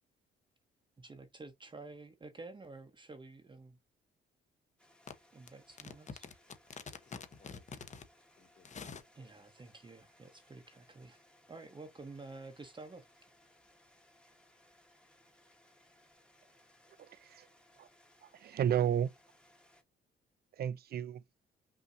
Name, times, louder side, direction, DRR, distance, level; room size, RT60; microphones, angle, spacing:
voice 1, 1.0-3.8 5.3-6.2 9.2-11.2 11.5-13.1, right 3 dB, 25° right, 0.9 m, -50 dB
sound 1, 4.8-19.8, left 1 dB, 5° left, 1.1 m, -66 dB
voice 2, 6.7-8.0 8.4-9.0, left 5 dB, 35° left, 1.0 m, -47 dB
voice 3, 17.0-17.5 17.8-17.9 18.2-19.1 20.5-21.2, right 9 dB, 50° right, 0.5 m, -33 dB
5.4 x 2.8 x 2.6 m
cardioid pair, 90°, 20 cm